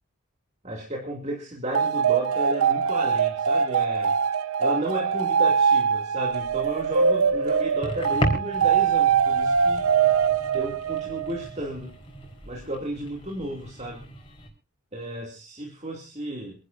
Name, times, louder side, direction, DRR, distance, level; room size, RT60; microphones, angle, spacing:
voice 1, 0.6-4.2 4.6-9.9 10.5-11.9 12.5-14.1 14.9-16.5, right 1 dB, 30° right, -1 dB, 2.7 m, -33 dB
sound 1, 1.7-11.5, right 6 dB, 80° right, 0.8 m, -23 dB
sound 2, 6.3-14.5, equal, 25° left, 4.3 m, -36 dB
27.5 x 11.5 x 2.7 m, 0.29 s
head